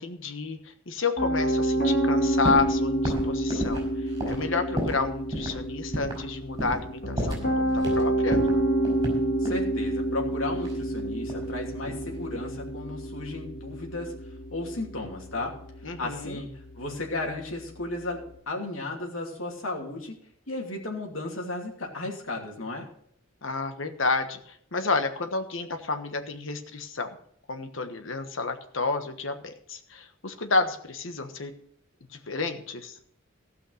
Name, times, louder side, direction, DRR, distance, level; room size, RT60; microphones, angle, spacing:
voice 1, 0.0-3.8 4.3-8.4 15.8-16.4 23.4-27.1 27.5-31.5 32.3-33.0, left 4 dB, 70° left, 7 dB, 1.3 m, -30 dB
Piano, 1.2-18.3, right 1 dB, 50° left, 2.3 m, -29 dB
sound 1, 2.4-2.7 3.0-5.1 5.3-5.6 5.9-6.3 6.6-6.9 7.2-8.0 8.3-9.7 10.6-11.5 11.8-12.3, equal, 20° right, 4.9 m, -32 dB
voice 2, 9.4-14.1 14.5-15.5 15.9-16.5 16.8-20.2 20.5-22.9, left 2 dB, 85° left, 1 dB, 2.7 m, -34 dB
15.5 x 5.7 x 6.4 m, 0.67 s
head